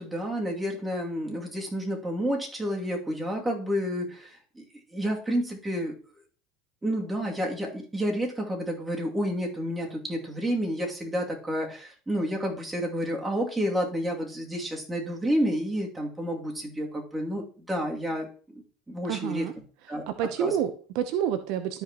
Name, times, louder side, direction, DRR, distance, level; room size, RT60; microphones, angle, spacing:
voice 1, 0.0-4.6 4.9-6.0 6.8-19.5 19.9-20.0 20.4-20.6, equal, 10° right, -1 dB, 2.5 m, -30 dB
voice 2, 19.1-19.5 20.1-21.8, right 9 dB, 65° right, 9 dB, 0.8 m, -28 dB
13.0 x 5.3 x 3.0 m, 0.40 s
hypercardioid pair, 95°, 0 cm